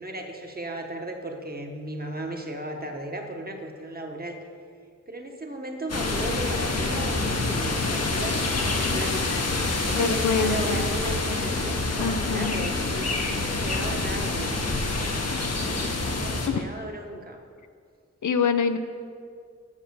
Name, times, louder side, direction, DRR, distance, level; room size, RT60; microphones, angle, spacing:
voice 1, 0.0-4.4 5.1-9.2 9.6-17.4, right 1 dB, 30° right, 2 dB, 1.1 m, -36 dB
sound 1, 5.9-16.5, left 2 dB, 60° left, 1.0 m, -27 dB
voice 2, 9.9-10.8 12.0-12.7 16.5-16.6 18.2-18.8, left 6 dB, 85° left, 9 dB, 0.6 m, -25 dB
7.3 x 7.3 x 6.5 m, 2.2 s
wide cardioid pair, 85°, 29 cm